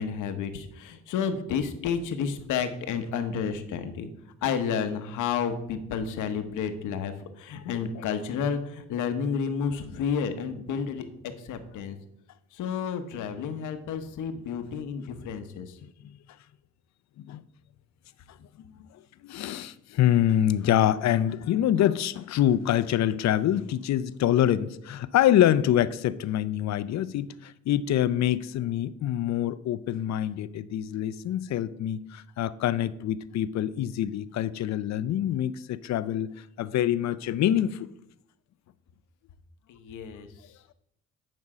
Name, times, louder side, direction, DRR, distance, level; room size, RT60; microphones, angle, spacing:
voice 1, 0.0-4.1 4.4-11.1 11.4-12.0 12.5-15.8 39.7-40.3, left 6 dB, 85° left, 1.0 m, -31 dB
voice 2, 19.2-37.9, left 11 dB, 65° left, 0.5 m, -25 dB
9.6 x 5.4 x 4.9 m
cardioid pair, 90°, 30 cm